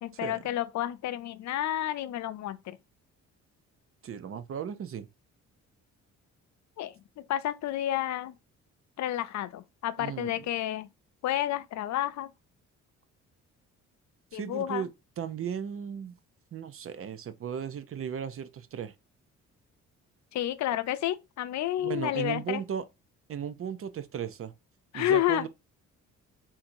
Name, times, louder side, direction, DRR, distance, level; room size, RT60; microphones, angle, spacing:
voice 1, 0.0-2.8 6.8-8.3 9.0-10.9 11.2-12.3 14.3-14.9 20.3-22.6 24.9-25.5, left 12 dB, 65° left, 0.5 m, -30 dB
voice 2, 4.0-5.1 10.0-10.4 14.3-14.9 15.2-16.2 16.5-18.9 21.8-22.9 23.3-24.5 24.9-25.5, right 8 dB, 45° right, 0.6 m, -36 dB
3.7 x 2.8 x 4.4 m
cardioid pair, 90°, 30 cm